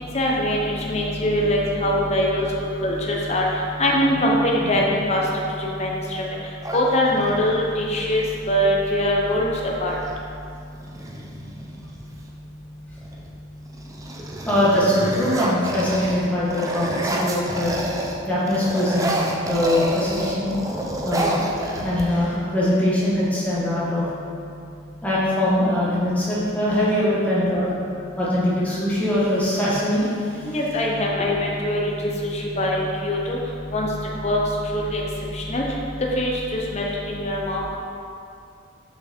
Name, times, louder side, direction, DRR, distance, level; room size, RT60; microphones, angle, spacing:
voice 1, 0.1-2.5 2.8-5.2 5.6-6.3 6.7-10.0 30.5-33.4 33.7-33.9 34.2-34.4 34.7-35.0 35.3-35.6 36.2-37.6, left 1 dB, 35° left, -2 dB, 0.8 m, -22 dB
sound 1, 6.6-7.6 9.2-9.4 9.7-10.2 10.8-12.3 12.9-13.3 13.7-18.2 18.5-22.4, right 1 dB, 15° right, 0.5 m, -29 dB
voice 2, 14.4-17.8 18.3-20.6 21.0-21.5 21.8-24.0 25.0-27.7 28.2-30.5 31.2-31.3, left 1 dB, 5° left, -8 dB, 1.5 m, -22 dB
5.9 x 5.8 x 4.4 m, 2.5 s
head